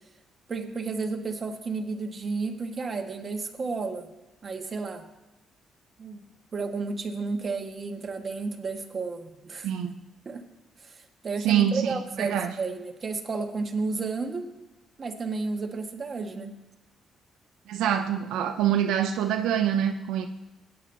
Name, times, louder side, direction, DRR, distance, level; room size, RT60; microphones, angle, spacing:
voice 1, 0.5-4.1 4.4-5.1 6.0-6.2 6.5-9.7 10.2-10.4 10.8-14.5 15.0-16.5, right 4 dB, 40° right, 3 dB, 1.5 m, -32 dB
voice 2, 9.6-10.0 11.4-12.5 17.7-20.3, right 9 dB, 90° right, 5 dB, 0.6 m, -25 dB
18.5 x 9.4 x 2.7 m, 1.0 s
cardioid pair, 90°, 0 cm